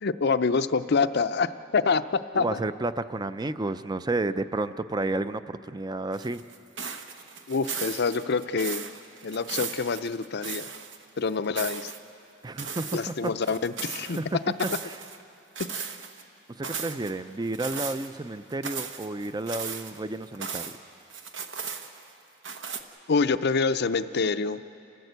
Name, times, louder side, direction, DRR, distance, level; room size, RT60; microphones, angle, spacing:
voice 1, 0.0-2.6 7.5-8.8 9.2-10.6 11.2-11.8 12.9-14.2 15.6-15.9 23.1-24.6, left 4 dB, 55° left, 12 dB, 0.6 m, -26 dB
voice 2, 2.3-6.4 12.4-13.3 14.0-15.0 16.5-20.8, right 2 dB, 20° right, 12 dB, 0.5 m, -31 dB
sound 1, 6.1-11.0 11.3-12.0 12.6-14.2 14.6-15.2 15.6-16.2 16.6-17.1 17.5-18.1 18.5-20.8 21.1-22.1 22.4-22.8, right 6 dB, 70° right, 1.2 m, -37 dB
28.5 x 15.5 x 8.1 m, 2.8 s
head